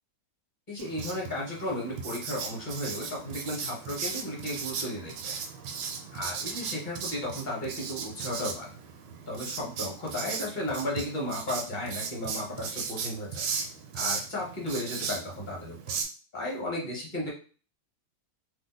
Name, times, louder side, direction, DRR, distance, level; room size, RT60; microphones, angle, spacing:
voice 1, 0.7-5.4 6.1-8.7 9.3-13.5 13.9-16.0 16.3-17.3, left 1 dB, 30° left, -3 dB, 1.0 m, -34 dB
Writing, 0.8-16.0, right 5 dB, 90° right, 1.3 m, -37 dB
2.9 x 2.1 x 4.0 m, 0.38 s
omnidirectional pair, 1.8 m